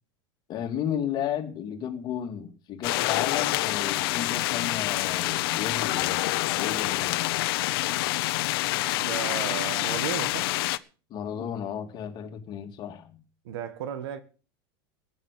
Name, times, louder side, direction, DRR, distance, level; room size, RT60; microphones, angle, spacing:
voice 1, 0.5-6.2 6.5-7.3 11.1-13.2, left 9 dB, 35° left, 2.4 m, -33 dB
sound 1, 2.8-10.8, left 18 dB, 70° left, 1.0 m, -27 dB
voice 2, 9.0-10.5 13.4-14.2, right 9 dB, 80° right, 1.7 m, -34 dB
15.5 x 9.1 x 6.8 m
supercardioid pair, 155°, 13 cm